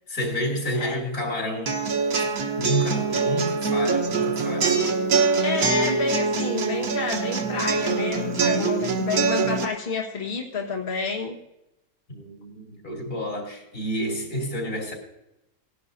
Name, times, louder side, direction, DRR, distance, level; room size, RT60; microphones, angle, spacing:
voice 1, 0.1-1.8 2.2-2.3 2.6-4.8 12.1-14.9, equal, 90° left, 3.4 m, -29 dB
sound 1, 1.7-9.6, right 4 dB, 85° right, 1.6 m, -24 dB
voice 2, 5.4-11.4, left 4 dB, 40° left, 1.6 m, -29 dB
17.5 x 11.0 x 2.7 m
omnidirectional pair, 1.5 m